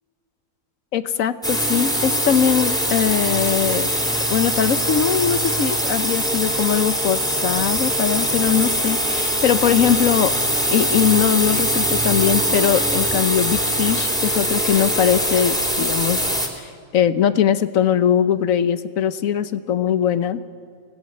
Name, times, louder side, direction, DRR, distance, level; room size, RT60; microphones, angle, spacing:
voice 1, 0.9-3.9 4.3-10.3 10.7-16.3 16.6-20.4, left 9 dB, 65° left, 13 dB, 1.2 m, -21 dB
sound 1, 1.4-16.5, equal, ahead, 3.0 m, -22 dB
24.0 x 18.5 x 7.7 m, 2.3 s
omnidirectional pair, 1.6 m